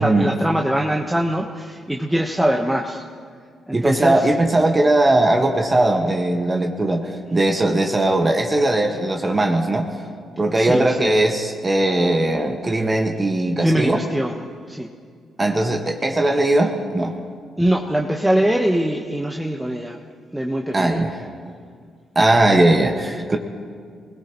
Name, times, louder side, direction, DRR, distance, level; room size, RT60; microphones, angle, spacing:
voice 1, 0.0-3.0 3.7-4.2 10.5-11.2 13.6-14.4 14.7-14.9 17.6-20.0 20.3-21.0, right 1 dB, 10° right, 1 dB, 1.2 m, -22 dB
voice 2, 3.7-9.9 10.4-14.0 15.4-17.1 20.7-21.3 22.1-23.4, right 2 dB, 30° right, 3 dB, 1.6 m, -19 dB
23.5 x 17.5 x 3.1 m, 2.1 s
hypercardioid pair, 45°, 0 cm